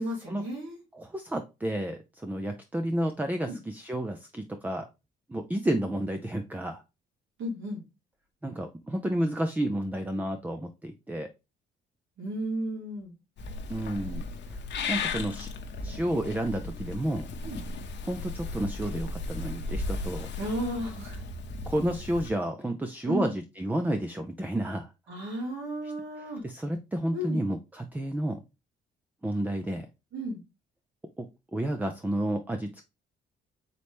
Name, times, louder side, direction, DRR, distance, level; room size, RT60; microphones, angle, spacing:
voice 1, 0.0-0.8 3.4-3.6 7.4-7.8 12.2-13.1 17.4-17.6 20.4-21.2 23.1-23.3 25.1-26.4 27.1-27.4 30.1-30.4, equal, 75° right, -1 dB, 2.4 m, -33 dB
voice 2, 0.9-4.9 5.3-6.8 8.4-11.3 13.7-14.6 14.9-15.5 15.8-17.3 18.0-20.3 21.7-24.9 26.2-28.4 29.2-29.9 31.2-31.3 31.5-32.8, right 1 dB, 10° right, 6 dB, 0.5 m, -31 dB
Purr / Meow, 13.4-22.3, left 3 dB, 65° left, 0.8 m, -36 dB
4.1 x 3.1 x 3.4 m, 0.26 s
cardioid pair, 90°, 20 cm